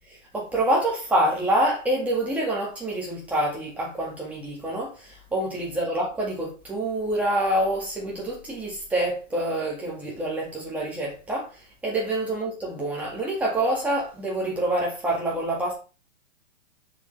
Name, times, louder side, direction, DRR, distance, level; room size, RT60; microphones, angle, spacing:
voice 1, 0.3-11.5 11.8-15.7, right 1 dB, 5° right, 1.9 m, -26 dB
6.7 x 6.5 x 3.3 m
hypercardioid pair, 165°, 36 cm